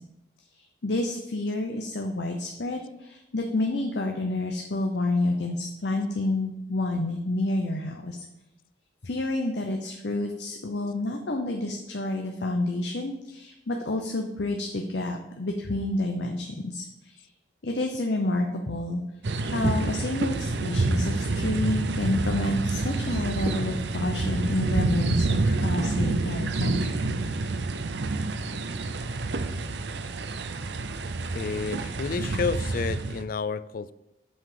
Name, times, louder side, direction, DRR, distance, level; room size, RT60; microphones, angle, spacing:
voice 1, 0.8-8.2 9.0-17.2 17.6-19.0 19.4-27.2, left 2 dB, 75° left, 0.8 m, -29 dB
sound 1, 19.2-33.2, right 3 dB, 75° right, 0.6 m, -28 dB
voice 2, 31.3-33.9, left 5 dB, 55° left, 0.3 m, -30 dB
7.7 x 5.9 x 5.1 m
head